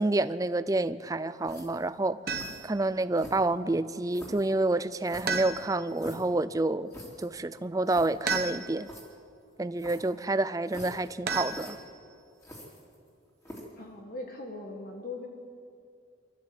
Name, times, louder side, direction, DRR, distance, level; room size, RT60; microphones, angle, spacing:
voice 1, 0.0-2.2 2.6-6.9 7.2-8.9 9.6-11.8, right 2 dB, 15° right, 0.4 m, -28 dB
sound 1, 1.4-1.9 2.3-2.6 3.1-3.6 4.1-4.5 5.0-6.3 6.9-7.3 7.6-7.7 7.8-8.1 8.8-9.0 9.8-10.1 10.7-11.1 11.4-11.7 12.4-13.1 13.4-13.8, equal, 15° left, 3.6 m, -46 dB
sound 2, 2.3-2.8 5.3-6.0 8.3-9.0 11.3-12.1, right 4 dB, 50° right, 1.2 m, -33 dB
voice 2, 13.8-15.3, left 2 dB, 45° left, 1.6 m, -40 dB
25.0 x 13.5 x 8.3 m
head